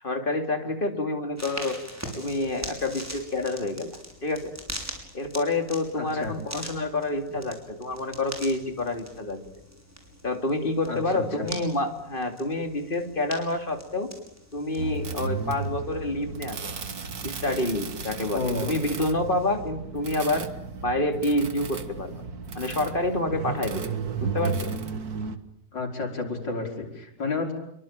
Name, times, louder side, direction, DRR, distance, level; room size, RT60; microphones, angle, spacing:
voice 1, 0.0-1.8 2.2-4.5 5.1-9.4 10.2-14.1 14.5-16.7 17.2-20.5 20.8-22.1 22.5-23.9 24.2-24.7, left 2 dB, 30° left, 5 dB, 3.3 m, -28 dB
sound 1, 1.4-19.7, equal, 10° right, 6.2 m, -43 dB
voice 2, 6.0-6.3 10.9-11.5 18.3-18.7 25.7-27.5, left 3 dB, 80° left, 3 dB, 5.9 m, -31 dB
sound 2, 14.8-25.4, right 4 dB, 55° right, 2.2 m, -34 dB
27.5 x 23.5 x 9.1 m, 0.77 s
omnidirectional pair, 1.9 m